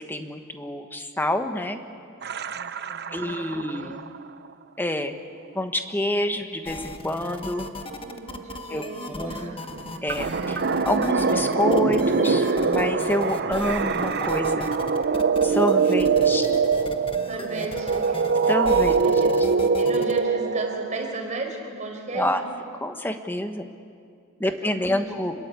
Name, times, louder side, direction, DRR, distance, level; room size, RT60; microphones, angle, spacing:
voice 1, 0.0-1.8 3.1-4.0 4.8-5.1 5.5-7.7 8.7-9.6 10.0-10.6 10.8-14.6 15.4-16.6 18.5-19.0 22.1-22.4 22.8-23.7 24.4-25.3, left 1 dB, 10° left, 6 dB, 1.3 m, -27 dB
sound 1, 2.2-4.2 7.1-7.2 7.5-21.1, right 4 dB, 50° right, 0.8 m, -23 dB
voice 2, 2.5-4.0 6.4-6.5 7.9-9.6 17.2-18.2 19.0-19.3 19.7-22.5 24.4-25.1, right 2 dB, 35° right, 1 dB, 4.8 m, -36 dB
sound 2, 6.7-20.2, left 2 dB, 25° left, 1.2 m, -38 dB
27.5 x 21.0 x 8.3 m, 2.3 s
head